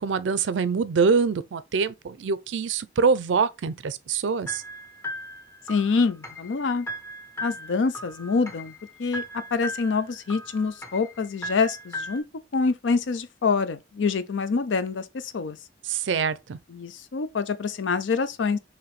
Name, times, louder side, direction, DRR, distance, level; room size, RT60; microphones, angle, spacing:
voice 1, 0.0-4.6 15.8-16.6, right 5 dB, 85° right, 0.4 m, -24 dB
sound 1, 4.5-12.2, equal, 15° left, 0.7 m, -38 dB
voice 2, 5.7-6.9 7.4-8.7 9.0-12.2 12.5-15.6 16.7-18.6, left 4 dB, 90° left, 0.5 m, -26 dB
4.8 x 3.1 x 3.1 m
head